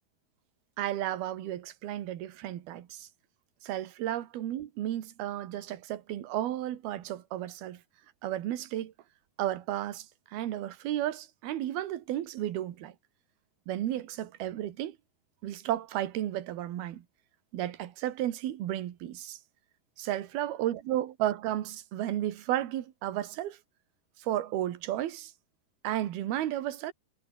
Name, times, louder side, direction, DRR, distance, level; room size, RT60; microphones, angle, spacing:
voice 1, 0.8-3.1 3.6-7.8 8.2-8.9 9.4-12.9 13.7-15.0 15.4-17.0 17.5-19.4 20.0-23.6 24.2-25.3 25.8-26.9, right 12 dB, 70° right, 3.5 m, -33 dB
omnidirectional pair, 4.8 m